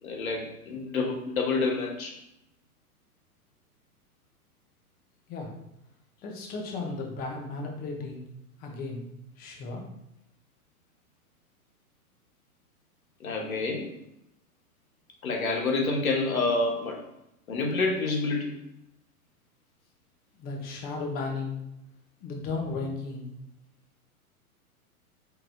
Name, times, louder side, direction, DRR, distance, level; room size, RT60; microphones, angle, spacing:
voice 1, 0.0-2.1 13.2-13.9 15.2-17.0 17.5-18.5, left 3 dB, 65° left, 0 dB, 1.2 m, -28 dB
voice 2, 6.2-8.3 8.6-9.1 9.4-9.8 20.4-21.6 22.2-23.3, left 3 dB, 20° left, 1 dB, 0.7 m, -35 dB
4.5 x 3.8 x 2.2 m, 0.83 s
figure-of-eight pair, 105°, 45 cm